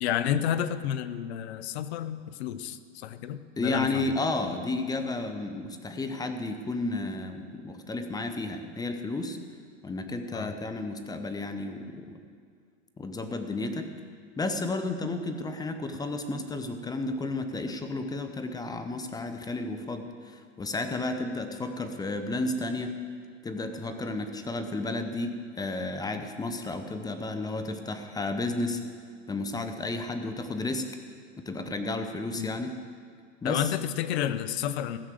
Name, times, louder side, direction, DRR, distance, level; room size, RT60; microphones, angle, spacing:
voice 1, 0.0-4.0 10.3-10.5 32.4-32.5 33.4-35.0, left 10 dB, 60° left, 13 dB, 0.8 m, -30 dB
voice 2, 3.6-9.4 9.8-12.2 13.0-13.9 14.4-23.0 23.4-28.8 29.3-30.9 31.4-32.8 33.4-33.7, left 2 dB, 10° left, 7 dB, 0.8 m, -32 dB
15.5 x 6.4 x 7.6 m, 2.1 s
hypercardioid pair, 120°, 37 cm